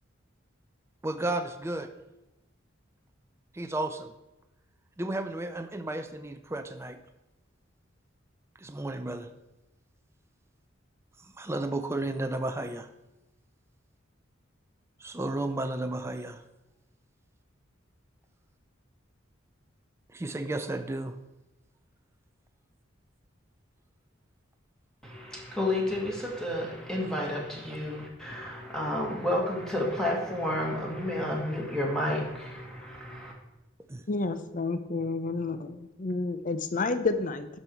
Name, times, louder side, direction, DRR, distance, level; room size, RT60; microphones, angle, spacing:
voice 1, 1.0-1.9 3.5-4.1 5.0-7.0 8.6-9.3 11.4-12.9 15.0-16.4 20.1-21.2 33.9-34.0, right 2 dB, 15° right, 7 dB, 0.5 m, -33 dB
voice 2, 25.0-33.3, left 1 dB, 5° left, -2 dB, 1.7 m, -31 dB
voice 3, 34.1-37.5, left 3 dB, 40° left, 11 dB, 0.6 m, -30 dB
11.5 x 5.5 x 4.5 m, 0.95 s
head